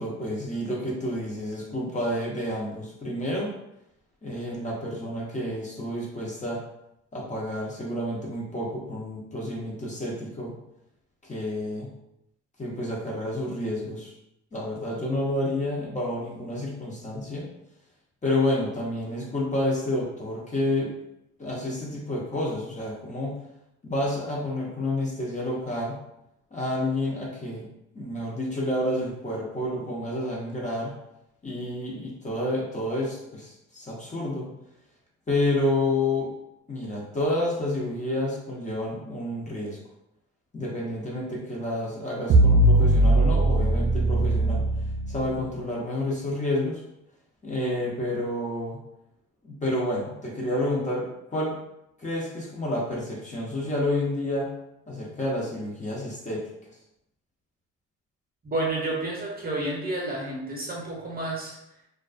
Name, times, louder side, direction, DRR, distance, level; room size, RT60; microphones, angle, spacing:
voice 1, 0.0-3.5 4.2-6.6 7.1-10.6 11.2-11.9 12.6-14.1 14.5-17.5 18.2-20.9 21.4-23.4 23.8-26.0 26.5-27.7 27.9-30.9 31.4-34.5 35.3-36.3 36.7-39.8 40.5-44.6 45.1-46.8 47.4-48.8 49.4-51.6 52.0-54.5 54.9-56.5, left 1 dB, 25° left, -4 dB, 0.7 m, -29 dB
sound 1, 42.3-45.4, right 1 dB, 50° right, 0.4 m, -20 dB
voice 2, 58.4-61.6, right 2 dB, 30° right, -2 dB, 0.8 m, -30 dB
2.3 x 2.3 x 2.4 m, 0.83 s
supercardioid pair, 75°, 31 cm